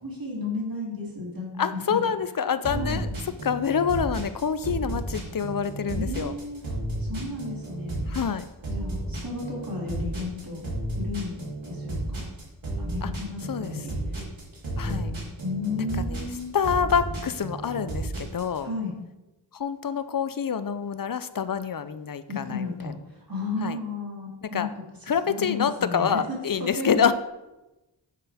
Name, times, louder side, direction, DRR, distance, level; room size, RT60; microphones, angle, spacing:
voice 1, 0.0-2.1 2.7-3.0 5.9-6.6 7.0-8.0 8.7-10.6 11.0-11.4 11.6-12.2 12.8-13.9 14.8-15.0 15.4-16.5 18.6-19.0 22.3-24.7 25.3-27.1, left 3 dB, 50° right, -3 dB, 2.8 m, -33 dB
voice 2, 1.6-6.3 8.1-8.5 13.0-13.1 13.5-13.9 14.8-15.1 15.8-16.3 16.5-18.7 19.5-22.9 23.6-23.8 24.4-24.7 25.1-27.1, left 7 dB, 50° left, 13 dB, 0.6 m, -27 dB
sound 1, 2.6-18.6, right 1 dB, 90° right, 3.2 m, -32 dB
9.7 x 6.9 x 3.5 m, 1.0 s
wide cardioid pair, 50°, 45 cm